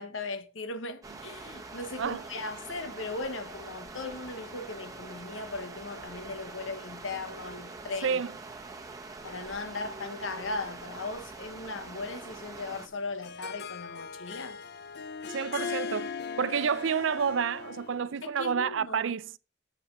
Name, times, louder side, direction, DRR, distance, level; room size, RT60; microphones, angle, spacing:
voice 1, 0.0-8.2 9.2-14.6 18.2-19.1, left 3 dB, 80° left, 1.2 m, -38 dB
sound 1, 1.0-12.9, right 3 dB, 20° right, 1.1 m, -44 dB
Harp, 12.8-18.1, left 5 dB, 55° left, 0.6 m, -39 dB
voice 2, 15.3-16.1 16.4-19.3, right 6 dB, 75° right, 0.5 m, -29 dB
8.0 x 6.4 x 5.9 m
head